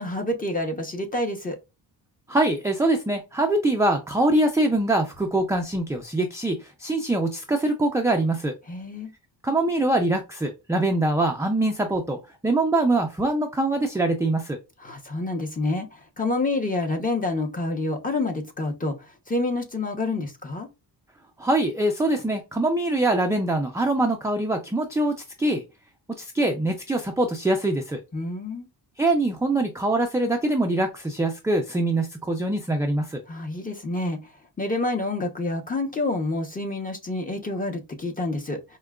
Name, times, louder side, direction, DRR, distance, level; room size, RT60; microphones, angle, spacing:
voice 1, 0.0-1.6 8.7-9.1 14.8-20.7 28.1-28.7 33.3-34.3 34.6-38.8, left 2 dB, 20° left, 0.8 m, -28 dB
voice 2, 2.3-8.5 9.4-14.6 21.4-25.6 26.2-28.0 29.0-33.2, right 2 dB, 5° right, 0.4 m, -23 dB
4.6 x 2.2 x 2.3 m
cardioid pair, 110°, 43 cm